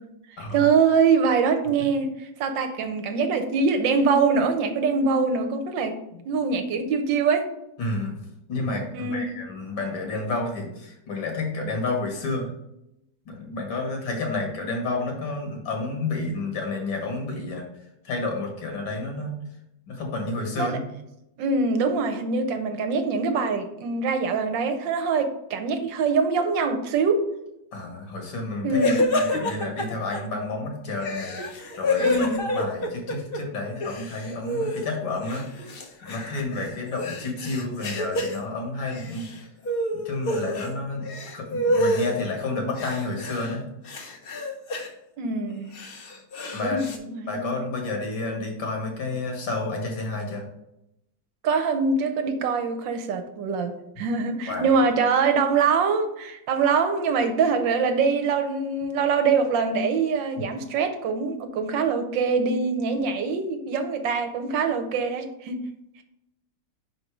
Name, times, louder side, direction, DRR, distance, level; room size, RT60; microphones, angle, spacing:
voice 1, 0.5-6.0 6.2-7.5 8.9-9.3 20.6-20.8 21.4-27.2 28.6-29.1 32.0-32.4 45.2-45.7 46.6-47.6 51.4-65.6, right 5 dB, 75° right, 6 dB, 1.4 m, -24 dB
voice 2, 7.8-8.2 8.5-12.5 13.3-17.7 18.0-19.3 19.9-20.9 27.7-31.4 31.7-35.4 36.1-39.3 40.1-41.1 41.3-43.6 46.5-46.8 47.3-50.4 54.5-54.8, left 2 dB, 75° left, 1 dB, 2.2 m, -30 dB
sound 1, 28.7-30.2 31.0-33.4 33.7-34.9 35.3-38.4 38.8-39.4 39.6-40.7 41.0-42.2 42.7-43.5 43.8-44.9 45.5-47.0, left 1 dB, 55° left, 0.6 m, -28 dB
5.2 x 4.4 x 4.8 m, 0.84 s
omnidirectional pair, 2.1 m